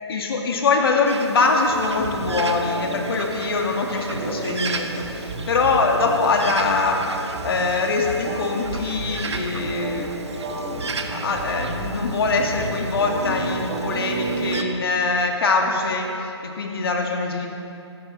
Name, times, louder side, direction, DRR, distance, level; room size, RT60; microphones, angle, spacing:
voice 1, 0.1-10.2 10.7-17.5, left 4 dB, 55° left, 2 dB, 2.1 m, -23 dB
Bird, 1.0-14.6, right 4 dB, 70° right, 1.3 m, -35 dB
sound 1, 1.7-14.6, right 2 dB, 45° right, 3.1 m, -31 dB
16.5 x 15.0 x 4.1 m, 2.7 s
figure-of-eight pair, 145°, 15 cm